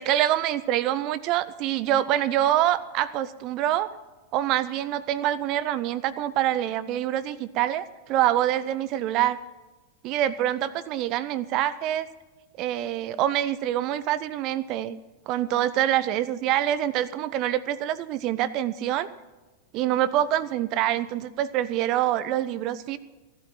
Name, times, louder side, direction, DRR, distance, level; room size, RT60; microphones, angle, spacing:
voice 1, 0.0-3.9 4.3-9.4 10.0-12.1 12.6-15.0 15.3-19.1 19.7-23.0, right 12 dB, 40° right, 15 dB, 0.7 m, -25 dB
16.5 x 12.0 x 5.8 m, 1.2 s
figure-of-eight pair, 90°, 0 cm